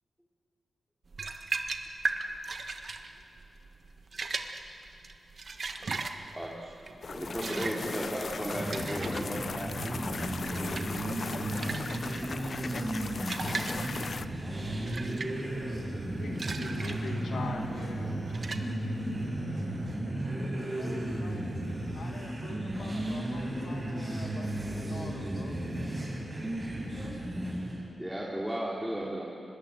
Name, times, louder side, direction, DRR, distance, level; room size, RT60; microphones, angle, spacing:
sound 1, 1.1-19.3, right 4 dB, 55° right, 1.4 m, -39 dB
voice 1, 6.3-6.7 7.1-9.9 28.0-29.2, right 1 dB, 5° right, -4 dB, 2.8 m, -35 dB
sound 2, 7.0-14.3, left 5 dB, 60° left, 0.6 m, -39 dB
voice 2, 7.1-7.8 8.4-8.7 10.2-11.2, right 2 dB, 85° right, -3 dB, 4.3 m, -46 dB
sound 3, 8.4-27.9, right 1 dB, 25° right, 7.7 m, -34 dB
voice 3, 16.2-18.3 20.6-21.5 21.9-25.6, left 4 dB, 75° left, 3 dB, 2.2 m, -44 dB
24.5 x 20.5 x 7.9 m, 2.8 s
cardioid pair, 80°, 0 cm